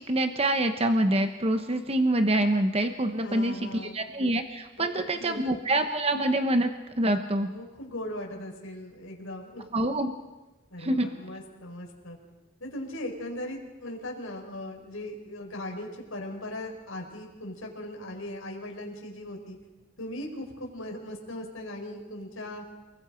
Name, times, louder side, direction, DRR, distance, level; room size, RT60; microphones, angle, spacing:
voice 1, 0.0-6.7 7.0-7.5 9.7-10.1 10.8-11.1, right 1 dB, 30° right, 7 dB, 1.0 m, -26 dB
voice 2, 3.2-4.0 4.8-5.4 7.5-9.6 10.7-12.2 12.6-19.6 20.0-22.6, left 1 dB, 80° left, 1 dB, 5.1 m, -39 dB
29.0 x 21.0 x 5.1 m, 1.1 s
head